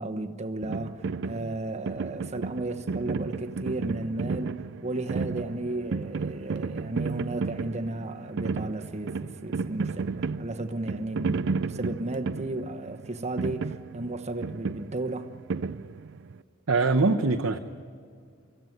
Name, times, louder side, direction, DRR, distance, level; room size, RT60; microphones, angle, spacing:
voice 1, 0.0-15.3, right 2 dB, 35° right, 1.1 m, -34 dB
sound 1, 0.6-16.4, right 4 dB, 60° right, 0.5 m, -33 dB
voice 2, 16.7-17.6, right 3 dB, 80° right, 0.9 m, -22 dB
25.5 x 15.0 x 9.4 m
head